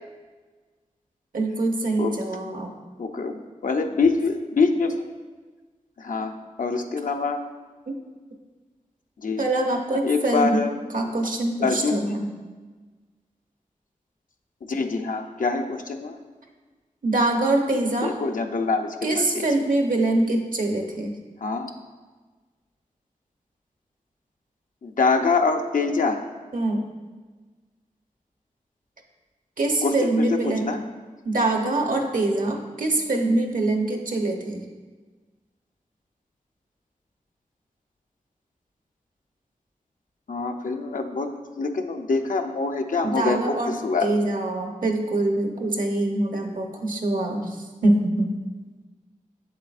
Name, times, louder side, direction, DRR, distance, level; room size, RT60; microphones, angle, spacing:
voice 1, 1.3-2.7 7.9-8.0 9.4-10.6 10.9-12.3 17.0-18.1 19.0-21.1 26.5-26.8 29.6-30.8 31.2-34.6 43.0-43.7 44.0-47.6 47.8-48.3, right 2 dB, 75° right, 3 dB, 0.9 m, -24 dB
voice 2, 3.0-5.0 6.0-6.3 6.6-7.4 9.2-9.4 10.0-10.7 11.6-12.0 14.7-16.2 18.0-18.9 19.2-19.5 21.4-21.7 24.8-26.2 29.8-30.8 40.3-41.3 41.6-44.1, left 4 dB, 75° left, 5 dB, 0.6 m, -24 dB
7.5 x 7.5 x 2.5 m, 1.4 s
cardioid pair, 45°, 14 cm